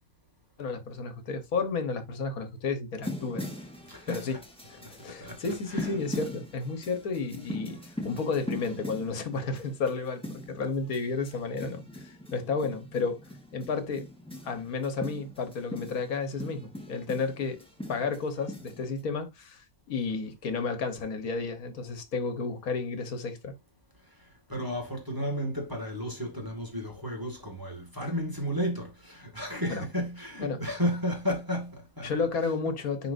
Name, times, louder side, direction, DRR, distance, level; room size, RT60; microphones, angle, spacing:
voice 1, 0.6-3.5 4.1-4.4 4.6-14.1 14.4-23.5 28.0-28.1 29.7-29.8 30.4-30.6 32.0-33.1, left 4 dB, 80° left, 1.6 m, -32 dB
sound 1, 3.0-19.0, left 1 dB, 5° left, 1.3 m, -41 dB
voice 2, 3.9-4.4 5.0-6.0 24.5-32.7, equal, 15° right, 2.0 m, -33 dB
10.5 x 3.9 x 2.6 m
omnidirectional pair, 1.5 m